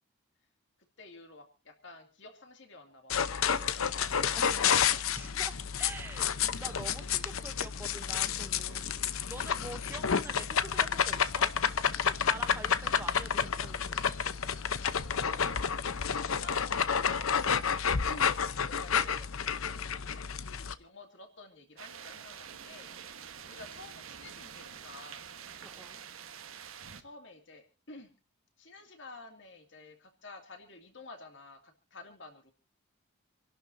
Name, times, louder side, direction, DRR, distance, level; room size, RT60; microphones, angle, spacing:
voice 1, 1.0-5.0 9.5-10.3 15.0-15.9 18.1-19.3 19.6-22.9 23.4-25.3 27.0-28.1 28.6-32.5, left 2 dB, 60° left, 5 dB, 2.4 m, -52 dB
sound 1, 3.1-20.7, left 7 dB, 80° left, 0.8 m, -30 dB
voice 2, 4.4-4.8 5.1-11.5 12.0-14.1 25.6-26.0, right 2 dB, 10° right, 7 dB, 0.8 m, -46 dB
sound 2, 21.8-27.0, right 7 dB, 80° right, 1.3 m, -47 dB
28.0 x 12.0 x 2.7 m, 0.31 s
head